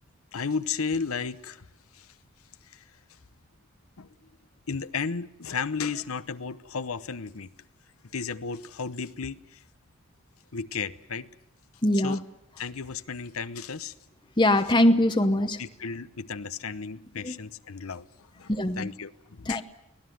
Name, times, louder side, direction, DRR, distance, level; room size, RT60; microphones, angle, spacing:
voice 1, 0.3-1.7 1.9-2.1 2.6-2.8 4.0-4.1 4.7-7.5 8.1-9.6 10.5-11.3 11.9-12.2 12.6-13.9 15.6-19.6, left 5 dB, 80° left, 0.9 m, -34 dB
voice 2, 11.8-12.2 14.4-15.6 17.2-17.3 18.5-18.9 19.5-19.6, left 1 dB, 20° left, 1.0 m, -22 dB
24.0 x 18.0 x 9.3 m
head